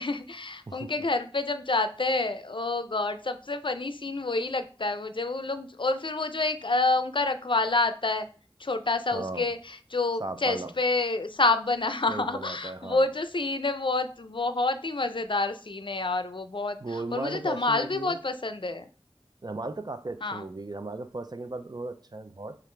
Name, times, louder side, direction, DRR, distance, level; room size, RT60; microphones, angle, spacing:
voice 1, 0.0-8.3 8.6-18.9 20.2-20.4, left 3 dB, 55° left, 0.5 m, -28 dB
voice 2, 9.1-9.5 10.2-10.7 12.1-13.1 16.8-18.2 19.4-22.6, right 2 dB, 45° right, 0.5 m, -36 dB
6.6 x 2.5 x 3.2 m
wide cardioid pair, 40°, 10 cm